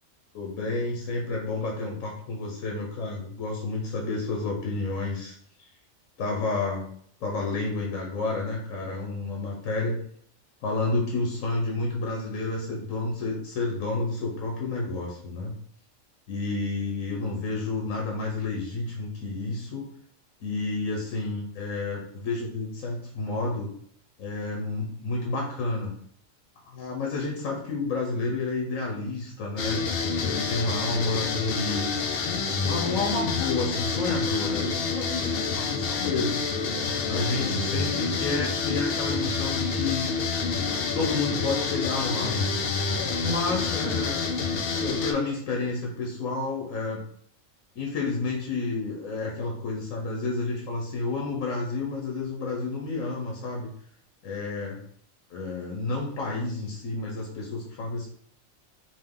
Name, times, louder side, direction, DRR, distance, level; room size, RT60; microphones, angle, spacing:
voice 1, 0.3-5.4 6.2-6.9 7.2-10.0 10.6-15.5 16.3-19.9 20.4-23.7 24.2-26.0 26.7-29.8 30.2-32.0 32.3-36.4 37.1-40.1 40.9-42.5 43.2-44.2 44.7-47.0 47.7-53.7 54.2-54.8 55.3-58.1, left 3 dB, 85° left, 0 dB, 1.2 m, -30 dB
sound 1, 29.6-45.1, left 4 dB, 60° left, 0.6 m, -28 dB
5.3 x 2.1 x 3.7 m, 0.62 s
omnidirectional pair, 1.4 m